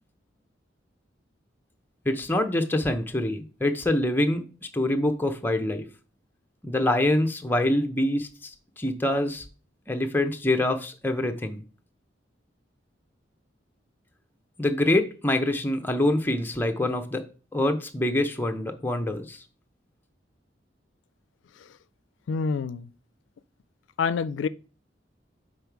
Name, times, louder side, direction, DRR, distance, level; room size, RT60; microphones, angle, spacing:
voice 1, 2.1-4.4 4.7-5.8 6.6-8.5 8.8-9.4 9.9-11.6 14.6-17.2 17.5-19.4, left 1 dB, 10° left, 0.7 m, -25 dB
voice 2, 22.3-22.9 24.0-24.5, left 5 dB, 85° left, 0.4 m, -27 dB
5.3 x 3.9 x 4.6 m
head